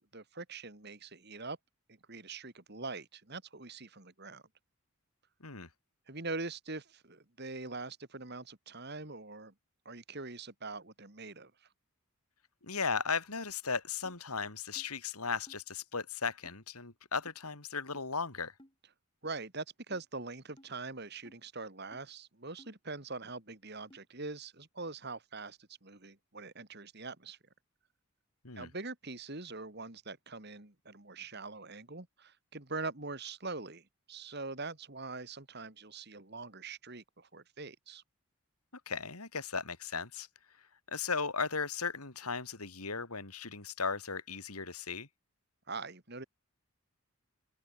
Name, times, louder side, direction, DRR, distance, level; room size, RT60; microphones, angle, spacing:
voice 1, 0.1-1.6 1.9-4.4 6.1-9.5 9.8-11.5 19.2-27.4 28.6-38.0 45.7-46.3, right 3 dB, 45° right, 2.5 m, -43 dB
voice 2, 12.6-18.5 28.4-28.7 38.9-40.3 40.9-45.1, left 5 dB, 85° left, 3.2 m, -36 dB
sound 1, 14.0-14.2 14.8-14.9 15.5-15.6 16.4-16.6 17.3-17.4 17.9-18.1 18.6-18.7 19.2-19.3 19.9-20.1 20.6-20.7 21.2-21.4 21.9-22.1 22.6-22.7 23.3-23.4 23.9-24.0, equal, 20° left, 4.7 m, -58 dB
open air
head